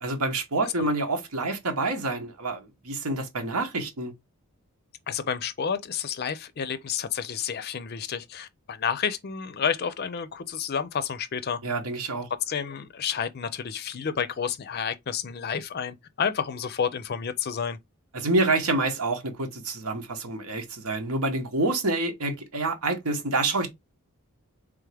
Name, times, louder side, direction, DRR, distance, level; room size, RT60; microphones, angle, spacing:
voice 1, 0.0-4.1 11.6-12.3 18.1-23.7, right 2 dB, 90° right, 1.1 m, -27 dB
voice 2, 5.1-11.6 12.4-17.8, left 7 dB, 45° left, 0.4 m, -30 dB
3.5 x 3.5 x 3.3 m
head